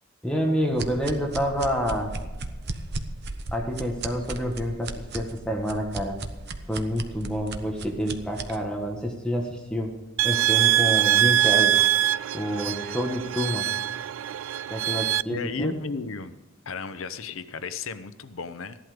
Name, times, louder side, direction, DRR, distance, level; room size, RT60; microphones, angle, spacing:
voice 1, 0.2-2.1 3.5-6.2 6.7-9.9 10.2-11.8 12.3-13.7 14.7-15.8, equal, 5° left, 1 dB, 1.5 m, -28 dB
sound 1, 0.8-8.6, right 3 dB, 55° right, 1.0 m, -36 dB
sound 2, 10.2-15.2, right 12 dB, 75° right, 0.3 m, -23 dB
voice 2, 15.3-16.4 16.7-18.8, left 4 dB, 85° left, 11 dB, 0.8 m, -34 dB
15.0 x 11.5 x 5.1 m, 1.1 s
head